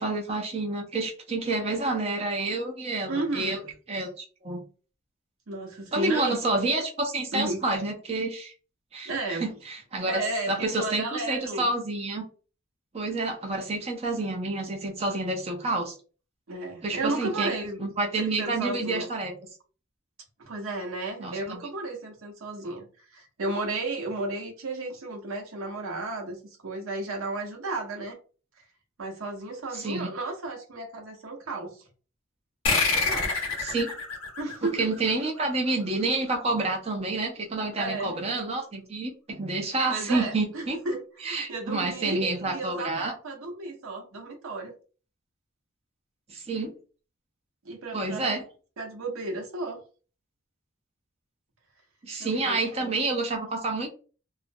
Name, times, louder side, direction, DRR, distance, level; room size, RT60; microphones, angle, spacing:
voice 1, 0.0-3.6 3.9-4.6 5.9-8.5 8.9-10.2 10.5-12.2 12.9-15.9 16.8-17.5 17.8-19.3 21.2-21.6 29.7-30.1 33.6-33.9 34.8-40.8 41.2-43.1 46.3-46.7 47.9-48.4 52.0-53.9, right 2 dB, 30° right, 0.5 m, -29 dB
voice 2, 3.1-3.6 5.5-6.4 7.3-7.6 9.1-9.5 10.0-11.7 16.5-17.8 18.2-19.1 20.4-28.2 28.6-28.7 29.0-31.9 32.9-33.4 34.4-34.9 37.8-38.2 39.9-44.7 47.6-48.4 48.8-49.8 52.2-52.9, right 2 dB, 75° right, 0.7 m, -33 dB
sound 1, 32.6-35.7, left 4 dB, 80° left, 0.9 m, -28 dB
2.4 x 2.0 x 2.5 m
head